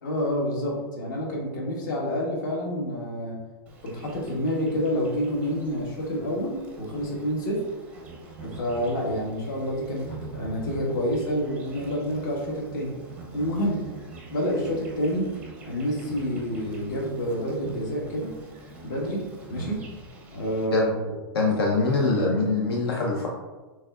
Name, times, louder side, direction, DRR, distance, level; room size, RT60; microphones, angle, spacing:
voice 1, 0.0-3.4 3.8-7.6 8.4-12.9 13.3-13.8 14.3-15.3 15.6-18.3 18.8-19.2 19.5-19.8 20.3-21.2 21.6-21.7, equal, 50° left, -2 dB, 1.3 m, -28 dB
Insect, 3.7-20.7, right 3 dB, 10° right, 0.6 m, -44 dB
voice 2, 21.3-23.3, left 3 dB, 75° left, -1 dB, 0.9 m, -23 dB
6.3 x 3.4 x 2.4 m, 1.2 s
supercardioid pair, 170°, 13 cm